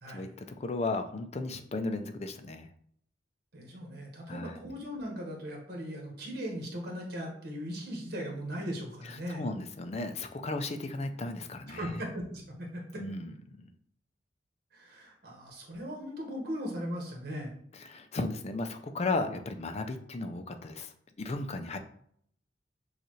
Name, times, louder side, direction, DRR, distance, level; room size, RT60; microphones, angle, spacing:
voice 1, 0.1-2.7 4.3-4.6 9.1-12.0 13.0-13.4 13.6-13.7 17.7-21.8, left 2 dB, 35° left, 8 dB, 0.4 m, -35 dB
voice 2, 3.5-9.4 11.7-13.0 14.7-17.5 21.7-21.8, equal, 60° right, 0 dB, 1.4 m, -38 dB
6.6 x 2.5 x 3.1 m, 0.65 s
head